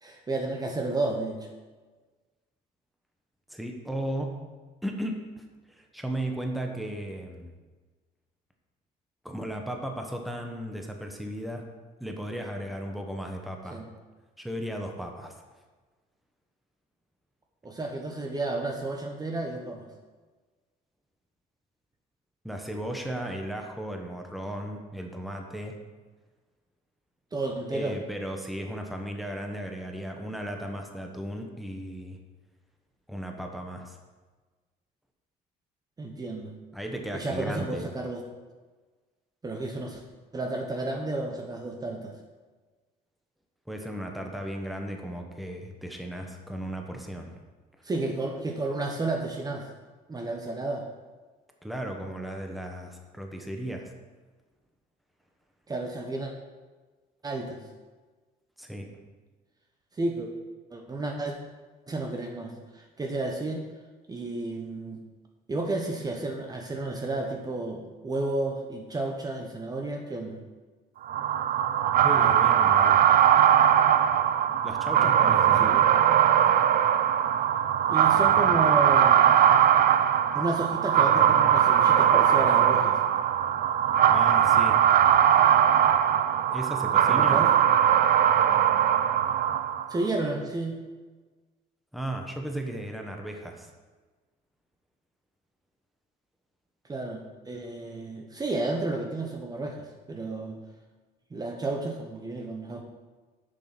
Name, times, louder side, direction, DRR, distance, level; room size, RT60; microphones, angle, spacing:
voice 1, 0.0-1.5 13.7-13.9 17.6-19.9 27.3-28.0 36.0-36.5 37.1-38.2 39.4-40.0 40.3-42.1 47.8-49.7 50.1-50.9 55.7-56.3 57.2-57.6 60.0-60.3 60.7-61.3 61.9-63.6 64.1-65.0 65.5-70.4 75.6-75.9 77.9-79.2 80.3-83.0 87.1-87.5 89.9-90.8 96.9-100.6 101.3-102.8, right 2 dB, 25° right, 2 dB, 1.0 m, -32 dB
voice 2, 3.5-4.4 4.8-7.5 9.2-11.6 12.0-13.8 14.4-15.3 22.4-25.7 27.7-32.2 33.1-34.0 36.7-37.9 43.7-47.3 51.6-53.9 58.6-58.9 72.0-73.0 74.6-75.8 84.1-84.8 86.5-87.4 91.9-93.7, right 1 dB, ahead, 2 dB, 1.2 m, -35 dB
sound 1, 71.1-90.0, right 9 dB, 60° right, 0.5 m, -21 dB
7.4 x 6.6 x 6.0 m, 1.3 s
cardioid pair, 110°, 17 cm